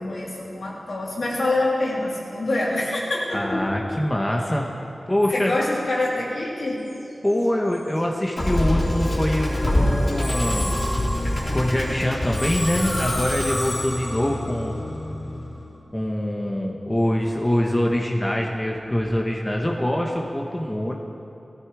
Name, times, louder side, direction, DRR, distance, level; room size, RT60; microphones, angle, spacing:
voice 1, 0.0-3.8 5.3-6.8 10.5-10.9, left 2 dB, 65° left, -5 dB, 3.4 m, -26 dB
voice 2, 3.3-4.7 5.1-5.5 7.2-10.7 11.5-14.7 15.9-20.9, left 1 dB, 15° left, 0 dB, 1.2 m, -24 dB
Musical instrument, 8.4-15.7, left 1 dB, 40° left, 3.4 m, -25 dB
17.0 x 14.0 x 4.9 m, 2.8 s
wide cardioid pair, 85°, 0 cm